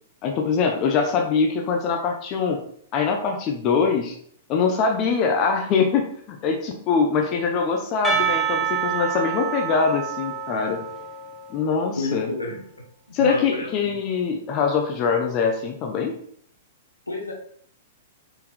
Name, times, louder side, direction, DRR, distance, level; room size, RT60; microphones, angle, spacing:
voice 1, 0.2-2.6 2.9-4.2 4.5-10.8 11.5-12.3 13.1-16.2, left 5 dB, 35° left, 2 dB, 0.5 m, -23 dB
Percussion, 8.0-11.9, right 7 dB, 5° right, 0.7 m, -27 dB
voice 2, 12.0-12.6 13.2-13.9 17.1-17.3, left 2 dB, 80° left, 0 dB, 0.9 m, -30 dB
4.3 x 3.8 x 2.5 m, 0.63 s
figure-of-eight pair, 105°, 0 cm